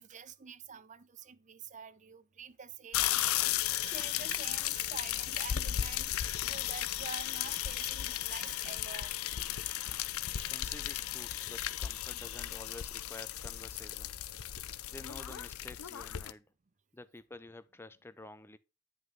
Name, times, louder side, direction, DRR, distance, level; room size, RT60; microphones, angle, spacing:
voice 1, 0.0-9.2, right 6 dB, 35° right, 0.6 m, -48 dB
sound 1, 2.9-16.3, left 12 dB, 85° left, 0.6 m, -35 dB
voice 2, 10.4-14.1 14.9-16.5 16.9-18.6, left 2 dB, 10° left, 0.5 m, -50 dB
9.2 x 5.7 x 3.6 m
head